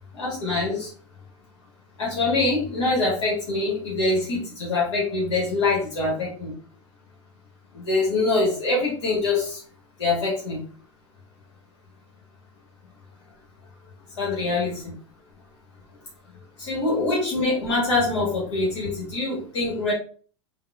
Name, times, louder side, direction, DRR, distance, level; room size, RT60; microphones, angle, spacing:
voice 1, 0.1-0.9 2.0-6.5 7.7-9.6 10.0-10.6 14.2-14.9 16.6-19.9, left 3 dB, 65° left, -4 dB, 1.1 m, -24 dB
3.5 x 2.0 x 2.3 m, 0.42 s
hypercardioid pair, 95°, 16 cm